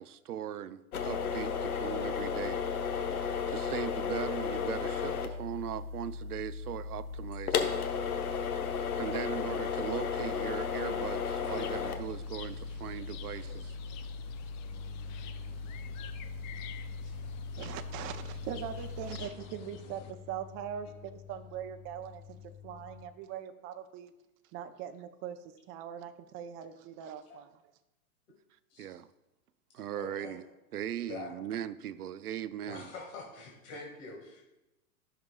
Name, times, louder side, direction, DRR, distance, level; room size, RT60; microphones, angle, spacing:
voice 1, 0.0-2.6 3.1-7.9 9.0-13.7 28.8-29.1 29.7-30.4 30.7-32.9, right 10 dB, 85° right, 14 dB, 0.6 m, -39 dB
sound 1, 0.9-19.3, left 6 dB, 75° left, 1.0 m, -35 dB
sound 2, 11.4-20.1, left 9 dB, 35° left, 0.4 m, -50 dB
sound 3, 14.6-23.1, left 9 dB, 10° left, 0.9 m, -51 dB
voice 2, 17.6-22.4 22.6-24.1 24.5-25.4 25.7-27.5, right 9 dB, 30° right, 8 dB, 0.6 m, -41 dB
voice 3, 30.0-30.4 31.1-31.3 32.7-34.4, left 3 dB, 55° left, -1 dB, 1.8 m, -45 dB
13.5 x 6.0 x 2.2 m, 0.97 s
hypercardioid pair, 110°, 45 cm